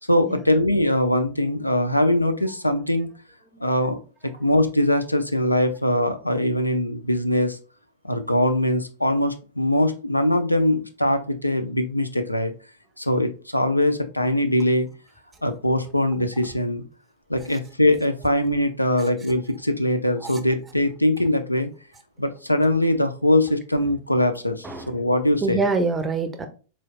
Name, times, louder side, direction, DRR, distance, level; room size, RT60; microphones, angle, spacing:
voice 1, 0.1-3.1 3.6-4.0 4.4-7.6 8.0-12.5 13.0-14.9 15.4-16.8 17.3-21.7 22.2-25.6, left 1 dB, 85° left, 0.4 m, -22 dB
voice 2, 25.4-26.5, right 4 dB, 15° right, 0.5 m, -25 dB
3.9 x 3.1 x 2.2 m
figure-of-eight pair, 95°, 0 cm